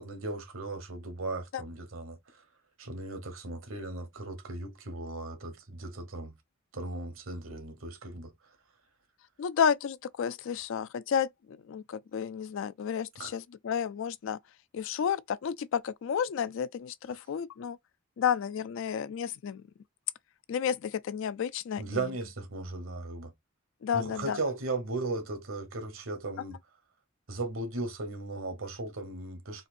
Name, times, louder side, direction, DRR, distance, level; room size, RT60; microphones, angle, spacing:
voice 1, 0.0-2.2 2.8-6.3 6.7-8.3 13.2-13.3 21.8-23.3 23.9-26.5 27.3-29.7, right 2 dB, 75° right, 1.1 m, -36 dB
voice 2, 9.4-14.4 14.7-17.8 18.2-19.6 20.5-22.1 23.8-24.4, left 7 dB, 65° left, 0.3 m, -31 dB
4.1 x 2.5 x 2.5 m
head